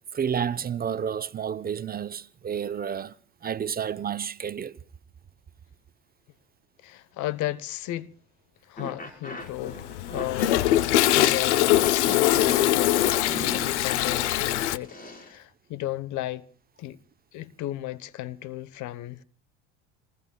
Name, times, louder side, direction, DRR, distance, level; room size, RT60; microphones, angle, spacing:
voice 1, 0.1-3.1 3.4-4.8, right 8 dB, 25° right, 0.8 m, -30 dB
voice 2, 6.8-8.1 8.6-13.0 13.5-16.5 16.8-17.0 17.3-19.2, left 15 dB, 60° left, 1.1 m, -34 dB
sound 1, 8.8-15.4, left 2 dB, 25° left, 4.9 m, -37 dB
Toilet flush, 9.5-14.8, left 14 dB, 85° left, 0.9 m, -22 dB
29.5 x 20.0 x 2.3 m
supercardioid pair, 85°, 33 cm